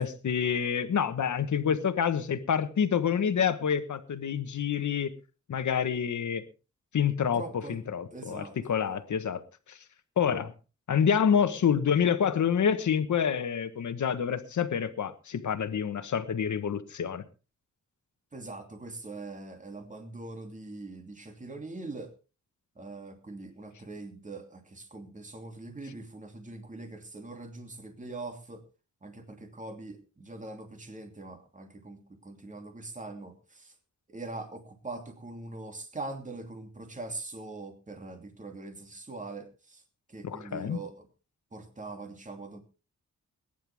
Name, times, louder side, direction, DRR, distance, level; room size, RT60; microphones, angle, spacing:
voice 1, 0.0-5.1 5.5-6.4 6.9-9.4 9.7-9.8 10.2-10.5 10.9-17.2 40.2-40.8, left 7 dB, 75° left, 11 dB, 1.3 m, -27 dB
voice 2, 7.3-7.8 8.1-8.6 8.9-9.0 18.3-22.1 22.8-28.6 29.0-33.7 34.1-39.8 40.1-41.1 41.5-42.6, right 2 dB, 25° right, 5 dB, 2.8 m, -42 dB
21.0 x 10.5 x 3.5 m, 0.33 s
wide cardioid pair, 130°, 30 cm